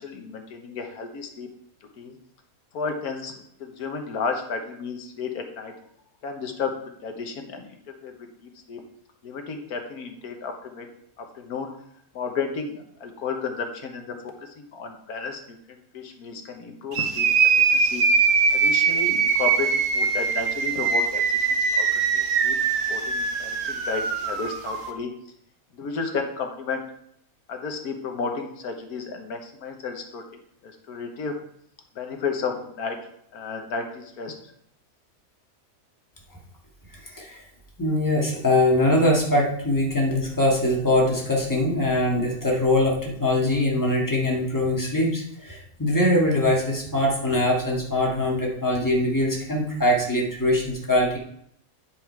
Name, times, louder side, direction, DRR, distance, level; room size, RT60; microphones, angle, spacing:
voice 1, 0.0-1.5 2.0-2.1 2.7-5.7 6.2-8.1 8.4-8.8 9.2-10.9 11.2-11.8 12.1-17.3 17.7-18.0 18.5-21.9 22.1-22.6 22.9-25.1 25.7-26.8 27.5-30.2 30.6-31.3 31.9-33.0 33.3-34.3, left 5 dB, 90° left, 4 dB, 1.7 m, -33 dB
sound 1, 16.9-24.9, right 5 dB, 85° right, 1.4 m, -22 dB
voice 2, 36.9-37.4 37.8-51.2, left 1 dB, 15° left, -3 dB, 1.9 m, -22 dB
9.2 x 5.3 x 4.6 m, 0.71 s
omnidirectional pair, 1.5 m